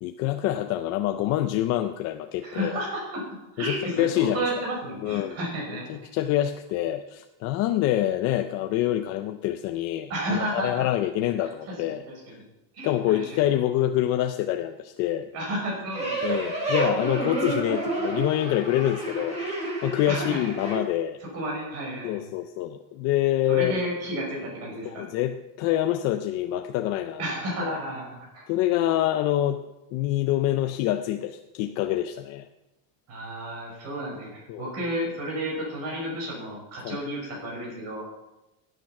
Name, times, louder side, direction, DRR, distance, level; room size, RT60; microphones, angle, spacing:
voice 1, 0.0-2.8 3.6-4.4 5.0-5.4 5.7-12.0 12.8-15.3 16.2-19.4 19.8-21.2 22.0-23.8 24.9-27.2 27.6-27.8 28.5-29.6 29.9-32.5 34.5-34.7 36.8-37.0, left 13 dB, 40° left, 7 dB, 0.5 m, -26 dB
voice 2, 2.4-3.2 3.5-5.9 10.1-10.8 11.4-11.5 11.9-12.4 12.7-13.4 15.3-16.6 20.1-20.5 21.2-22.3 23.5-25.1 27.2-28.1 28.3-28.4 33.1-38.0, right 1 dB, 35° right, -2 dB, 6.1 m, -32 dB
sound 1, 15.9-20.8, right 2 dB, 15° right, 4.4 m, -29 dB
16.0 x 9.2 x 5.9 m, 0.97 s
cardioid pair, 175°, 41 cm